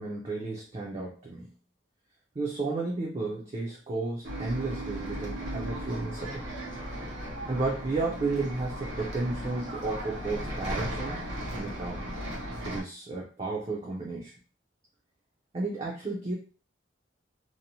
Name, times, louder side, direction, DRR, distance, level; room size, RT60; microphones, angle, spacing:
voice 1, 0.0-1.5 2.4-6.5 7.5-11.2 11.6-12.1 12.6-14.3 15.5-16.3, right 3 dB, 30° right, -3 dB, 0.4 m, -33 dB
Bus, 4.2-12.8, equal, 80° right, 0.7 m, -36 dB
2.7 x 2.0 x 2.8 m, 0.38 s
head